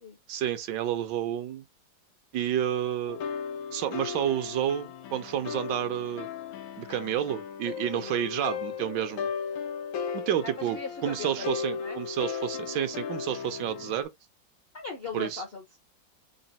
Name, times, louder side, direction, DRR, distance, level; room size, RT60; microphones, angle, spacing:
voice 1, 0.3-1.6 2.3-3.2 3.7-6.3 6.8-9.3 10.1-14.1 15.1-15.4, right 10 dB, 75° right, 1.2 m, -30 dB
sound 1, 3.1-14.0, left 6 dB, 85° left, 1.5 m, -36 dB
voice 2, 10.4-12.0 14.7-15.8, left 4 dB, 60° left, 0.6 m, -39 dB
4.0 x 2.1 x 3.9 m
omnidirectional pair, 2.1 m